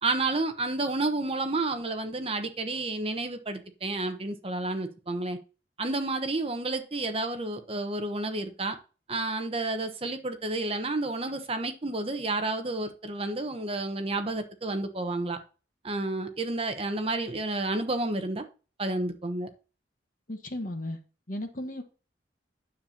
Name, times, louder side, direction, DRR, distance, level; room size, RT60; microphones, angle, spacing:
voice 1, 0.0-5.4 5.8-8.8 9.1-15.4 15.8-18.4 18.8-19.5, right 2 dB, 30° right, 0.9 m, -30 dB
voice 2, 20.3-21.0 21.3-21.8, left 1 dB, 45° left, 1.2 m, -35 dB
9.6 x 7.3 x 2.8 m
head